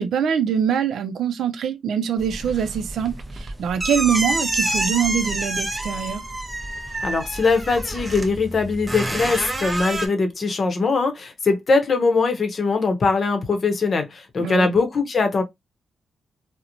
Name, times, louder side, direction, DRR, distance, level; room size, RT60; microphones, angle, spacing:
voice 1, 0.0-6.2 14.4-14.7, right 8 dB, 85° right, 0.3 m, -24 dB
sound 1, 2.2-10.1, right 2 dB, 25° right, 0.6 m, -28 dB
voice 2, 7.0-15.4, left 4 dB, 55° left, 0.7 m, -21 dB
2.8 x 2.0 x 2.4 m
cardioid pair, 65°, 0 cm